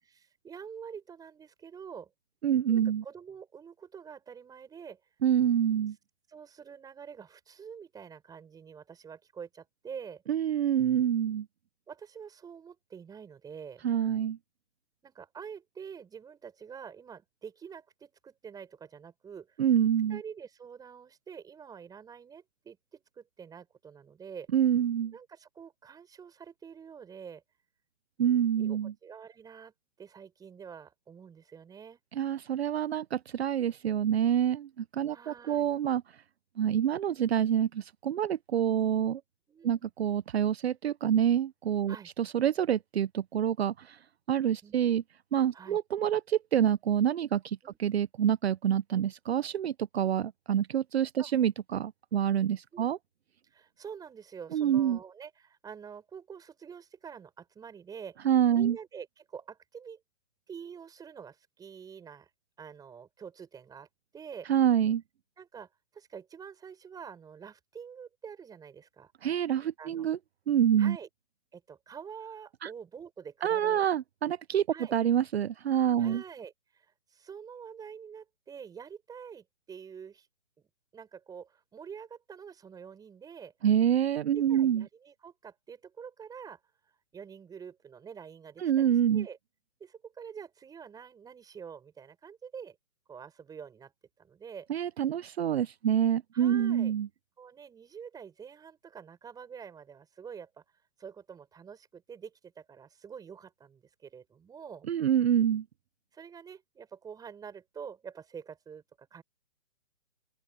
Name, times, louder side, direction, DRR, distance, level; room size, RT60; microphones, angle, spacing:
voice 1, 0.0-2.1 2.7-5.0 6.3-10.2 11.9-13.8 15.0-19.6 20.1-24.5 25.1-27.4 28.6-29.7 30.0-32.0 35.1-35.7 39.5-39.9 41.9-42.1 44.6-44.8 45.5-45.8 47.6-47.8 51.2-51.3 52.7-52.9 53.5-60.0 60.5-62.3 62.6-63.9 64.1-64.5 65.4-69.1 69.8-70.1 70.8-71.1 71.5-73.8 74.7-74.9 76.0-80.3 80.9-83.5 84.3-86.6 87.1-89.4 89.8-92.8 93.1-93.9 94.2-94.7 96.3-96.9 97.4-100.6 101.0-104.9 106.1-109.2, right 7 dB, 10° right, 5.5 m, -46 dB
voice 2, 2.4-3.0 5.2-6.0 10.3-11.5 13.8-14.4 19.6-20.2 24.5-25.1 28.2-28.9 32.1-36.0 36.6-39.2 39.6-44.0 44.3-45.0 45.3-53.0 54.5-55.0 58.2-58.8 64.5-65.0 69.2-70.2 70.5-71.0 72.6-72.7 73.4-74.7 74.9-76.2 83.6-84.8 88.6-89.3 94.7-97.1 104.9-105.6, right 9 dB, 60° right, 0.9 m, -27 dB
open air
hypercardioid pair, 145°, 36 cm